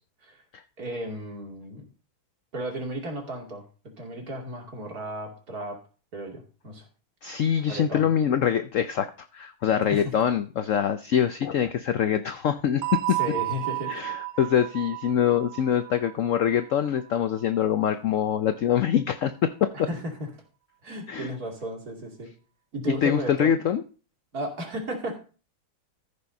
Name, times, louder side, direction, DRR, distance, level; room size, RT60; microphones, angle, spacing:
voice 1, 0.8-1.8 2.5-3.6 4.0-5.8 6.1-6.9 7.7-8.1 9.9-10.0 13.2-13.9 19.7-20.3 20.8-22.3 22.7-23.6 24.3-25.2, right 1 dB, 50° right, 1 dB, 3.0 m, -34 dB
voice 2, 7.2-13.2 13.9-19.9 21.1-21.3 23.0-23.8, left 9 dB, 80° left, 10 dB, 0.7 m, -24 dB
sound 1, 12.8-17.4, right 20 dB, 85° right, 1.5 m, -33 dB
14.0 x 5.4 x 5.3 m, 0.37 s
omnidirectional pair, 2.1 m